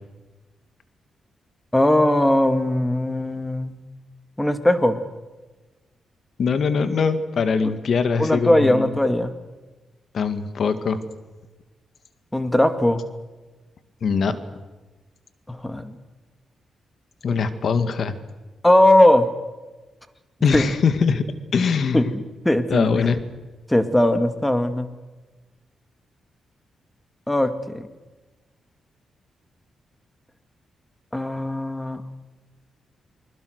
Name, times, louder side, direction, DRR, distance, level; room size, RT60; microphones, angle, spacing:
voice 1, 1.7-3.8 4.4-5.0 8.2-9.4 12.3-13.0 15.5-15.9 17.3-17.4 18.6-19.3 20.5-20.6 21.9-23.1 23.7-24.9 27.3-27.9 31.1-32.0, left 1 dB, 10° left, 9 dB, 2.1 m, -19 dB
voice 2, 6.4-8.9 10.1-11.0 14.0-14.4 17.2-18.2 20.4-21.2 21.5-22.0 22.7-23.2, left 5 dB, 65° left, 10 dB, 2.0 m, -22 dB
28.5 x 21.0 x 6.6 m, 1.2 s
cardioid pair, 75°, 0 cm